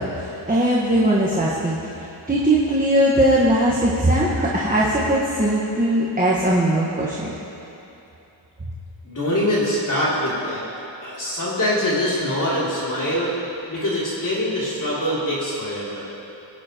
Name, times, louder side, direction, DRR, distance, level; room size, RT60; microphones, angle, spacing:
voice 1, 0.0-7.3, right 1 dB, 20° right, -5 dB, 1.3 m, -20 dB
voice 2, 9.0-10.6 11.0-13.3 13.7-16.1, left 1 dB, 45° left, -8 dB, 2.9 m, -24 dB
22.5 x 9.6 x 3.0 m, 2.9 s
wide cardioid pair, 125°, 46 cm